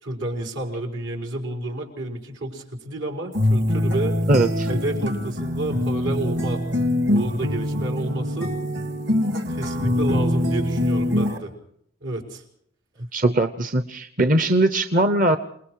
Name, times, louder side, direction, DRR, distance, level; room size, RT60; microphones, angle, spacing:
voice 1, 0.0-4.2 4.7-6.6 7.1-8.5 9.5-11.5 12.0-12.4, right 1 dB, 80° right, 2 dB, 5.2 m, -30 dB
sound 1, 3.3-11.4, left 1 dB, 65° right, 2.4 m, -23 dB
voice 2, 4.3-4.7 13.1-15.4, right 2 dB, 45° right, 9 dB, 0.9 m, -20 dB
29.0 x 20.0 x 4.8 m, 0.68 s
head